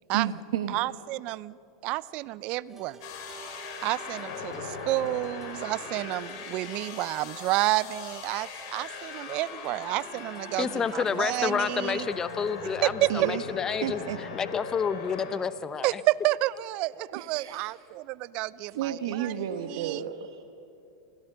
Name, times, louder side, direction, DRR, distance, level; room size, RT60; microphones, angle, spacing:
voice 1, 0.1-0.8 13.1-13.4 13.8-14.2 17.1-17.7 18.7-20.5, right 10 dB, 70° right, 6 dB, 1.1 m, -32 dB
voice 2, 0.7-1.6 1.8-3.0 3.8-12.1 12.8-13.1 15.8-20.0, right 18 dB, 50° right, 21 dB, 0.4 m, -30 dB
sound 1, 2.7-13.0, right 4 dB, 20° right, 2.9 m, -50 dB
sound 2, 3.0-15.3, left 5 dB, 60° left, 4.1 m, -40 dB
voice 3, 10.6-14.0 14.3-16.0, left 6 dB, 25° left, 14 dB, 0.9 m, -29 dB
28.0 x 17.0 x 6.7 m, 2.7 s
hypercardioid pair, 100°, 2 cm